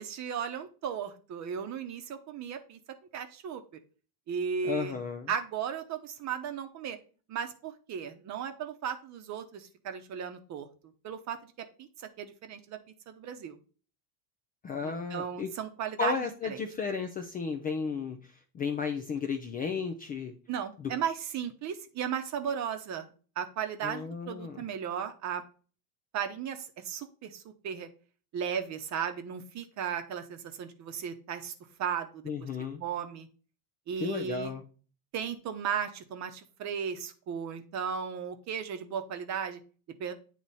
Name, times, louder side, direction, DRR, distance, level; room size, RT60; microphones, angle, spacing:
voice 1, 0.0-2.8 3.1-3.6 4.3-5.0 5.3-7.0 7.3-10.7 11.0-11.5 11.8-12.8 13.1-13.6 14.8-16.2 16.5-16.6 20.5-23.1 23.4-25.4 26.1-27.9 28.3-31.5 31.8-32.5 32.8-33.3 33.9-34.6 35.1-39.6 40.0-40.1, right 7 dB, 35° right, 8 dB, 0.9 m, -35 dB
voice 2, 4.6-5.3 14.6-15.5 16.0-20.3 20.8-20.9 23.8-24.6 32.3-32.8 34.0-34.6, left 5 dB, 20° left, 5 dB, 0.3 m, -34 dB
9.0 x 3.0 x 4.1 m, 0.38 s
supercardioid pair, 135°, 46 cm